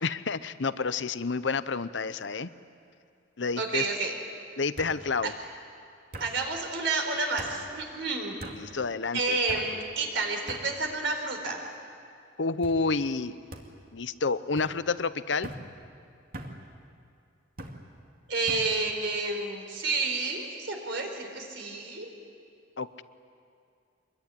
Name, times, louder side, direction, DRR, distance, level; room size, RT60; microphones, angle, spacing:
voice 1, 0.0-2.5 3.4-3.9 4.6-5.3 8.5-9.4 12.4-13.3 13.9-15.5 22.8-23.0, left 4 dB, 65° left, 14 dB, 0.8 m, -29 dB
sound 1, 1.3-1.7 2.1-2.6 3.7-3.8 4.8-5.0 6.1-6.3 7.4-7.6 8.4-8.6 9.5-9.7 10.5-10.7 11.4-11.8 12.6-12.8 13.5-13.7 14.6-14.7 15.4-15.6 16.3-16.6 17.6-17.8 18.5-18.7, right 1 dB, 50° right, 2.3 m, -41 dB
voice 2, 3.6-4.2 6.2-8.4 9.1-11.6 18.3-22.1, right 3 dB, 70° right, 3 dB, 4.2 m, -30 dB
25.0 x 22.0 x 9.8 m, 2.4 s
head